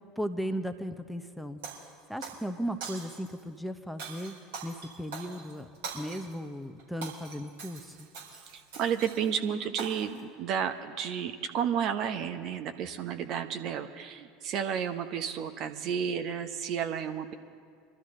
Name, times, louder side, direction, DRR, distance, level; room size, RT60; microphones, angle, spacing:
voice 1, 0.2-1.6 2.1-4.4 4.6-5.7 5.9-8.1, equal, ahead, 8 dB, 0.9 m, -36 dB
Shatter, 1.6-2.5 2.8-3.4 4.0-6.4 6.8-9.3 9.8-10.2, right 5 dB, 70° right, 4.0 m, -43 dB
voice 2, 8.5-17.3, right 8 dB, 50° right, 7 dB, 1.0 m, -32 dB
24.5 x 12.5 x 3.8 m, 2.1 s
figure-of-eight pair, 70°, 0 cm